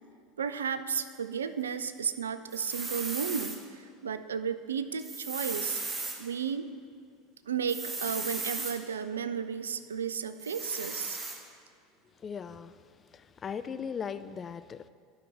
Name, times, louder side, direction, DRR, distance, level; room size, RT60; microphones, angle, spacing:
voice 1, 0.4-5.8 6.2-6.7 7.5-11.2, right 7 dB, 75° right, 11 dB, 0.3 m, -33 dB
sound 1, 2.5-3.6 5.0-6.2 7.7-8.8 10.4-11.4, right 3 dB, 25° right, 1.2 m, -36 dB
voice 2, 12.2-12.8 13.1-14.9, left 7 dB, 30° left, 12 dB, 0.3 m, -38 dB
12.0 x 5.4 x 3.5 m, 2.1 s
figure-of-eight pair, 75°, 0 cm